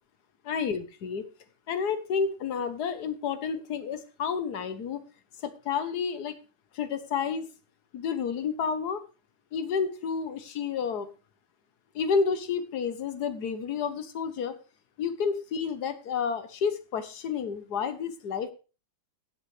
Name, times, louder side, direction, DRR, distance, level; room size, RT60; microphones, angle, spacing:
voice 1, 0.4-1.2 1.7-5.0 5.4-6.3 6.7-7.5 7.9-9.0 9.5-11.1 11.9-14.6 15.0-18.5, left 6 dB, 70° left, 11 dB, 1.6 m, -30 dB
16.5 x 8.0 x 3.3 m, 0.32 s
omnidirectional pair, 1.8 m